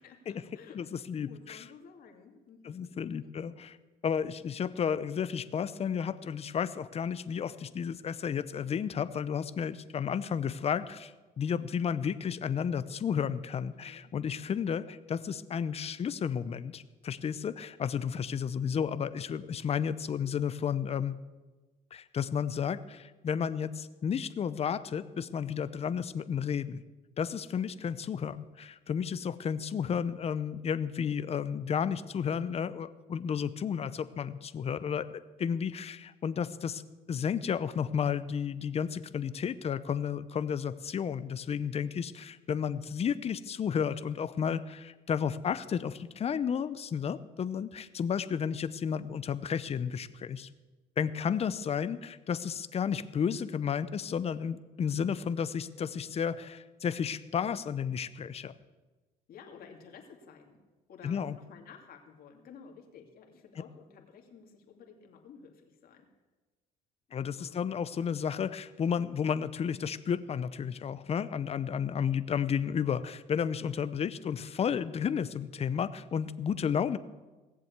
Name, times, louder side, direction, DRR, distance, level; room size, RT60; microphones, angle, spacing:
voice 1, 0.0-0.8 1.3-2.9 3.2-3.5 13.7-14.6 15.8-16.0 27.7-27.8 41.8-41.9 42.2-42.3 59.3-60.6 60.9-66.1 67.4-67.7 73.6-74.0, left 6 dB, 60° left, 2 dB, 2.5 m, -54 dB
voice 2, 0.7-1.6 2.6-3.7 4.0-21.2 21.9-26.8 27.2-35.1 35.4-36.8 37.1-50.5 51.0-58.5 61.0-61.3 67.1-77.0, left 7 dB, 35° left, 14 dB, 0.7 m, -32 dB
17.5 x 7.6 x 8.2 m, 1.2 s
cardioid pair, 110°, 17 cm